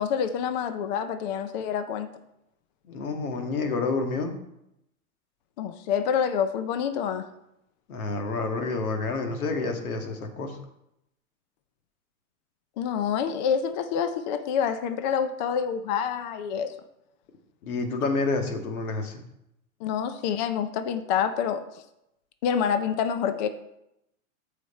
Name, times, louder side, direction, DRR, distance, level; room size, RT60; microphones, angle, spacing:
voice 1, 0.0-2.1 5.6-7.3 12.8-16.7 19.8-21.8 22.4-23.5, left 7 dB, 35° left, 9 dB, 0.5 m, -27 dB
voice 2, 2.9-4.3 7.9-10.6 17.6-19.2, left 3 dB, 85° left, 4 dB, 2.0 m, -29 dB
13.5 x 5.0 x 4.3 m, 0.84 s
supercardioid pair, 155°, 42 cm